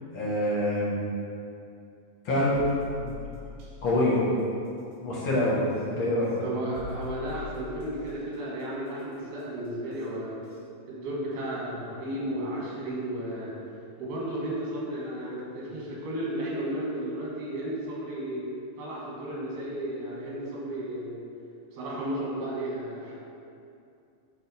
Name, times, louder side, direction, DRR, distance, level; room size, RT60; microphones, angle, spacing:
voice 1, 0.1-1.0 2.2-2.6 3.0-3.1 3.8-4.2 5.0-6.3, left 1 dB, 60° left, -7 dB, 1.4 m, -26 dB
sound 1, 2.5-3.8 5.7-5.8 6.8-8.1 9.9-10.0 10.5-10.6, left 2 dB, 65° right, 2.4 m, -40 dB
voice 2, 6.4-10.3 10.9-13.5 14.0-18.5 18.8-21.2 21.7-23.1, right 1 dB, 85° right, -6 dB, 3.7 m, -33 dB
9.1 x 4.2 x 4.3 m, 2.6 s
omnidirectional pair, 4.4 m